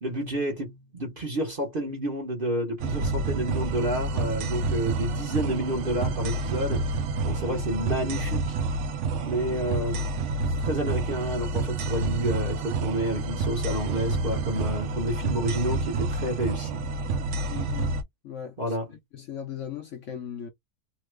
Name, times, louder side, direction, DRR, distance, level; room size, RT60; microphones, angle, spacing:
voice 1, 0.0-8.6 9.2-10.2 10.6-16.8 18.6-18.9, right 1 dB, 40° right, 0.9 m, -30 dB
sound 1, 2.8-18.0, right 3 dB, 65° right, 0.7 m, -29 dB
voice 2, 17.5-17.9 18.2-18.6 19.1-20.5, left 9 dB, 65° left, 0.8 m, -37 dB
3.0 x 2.1 x 3.2 m
omnidirectional pair, 1.7 m